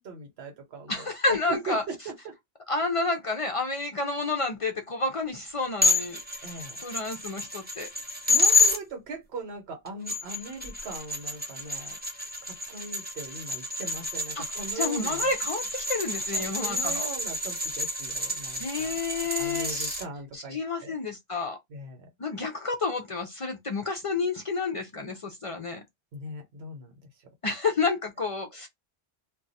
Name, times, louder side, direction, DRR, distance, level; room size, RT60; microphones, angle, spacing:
voice 1, 0.0-1.1 1.5-2.3 6.4-6.8 8.2-12.0 12.4-15.3 16.3-18.9 19.2-20.9 21.7-22.1 26.1-26.9, right 3 dB, 75° right, 1.1 m, -40 dB
voice 2, 0.9-1.8 2.7-6.2 6.8-7.9 14.4-14.5 14.7-15.6 15.9-17.1 18.6-20.0 20.3-21.6 22.2-25.8 27.4-28.7, left 3 dB, 50° left, 0.4 m, -30 dB
sound 1, 5.8-8.8 9.9-20.0, left 2 dB, 10° right, 0.6 m, -29 dB
2.4 x 2.2 x 3.9 m
omnidirectional pair, 1.1 m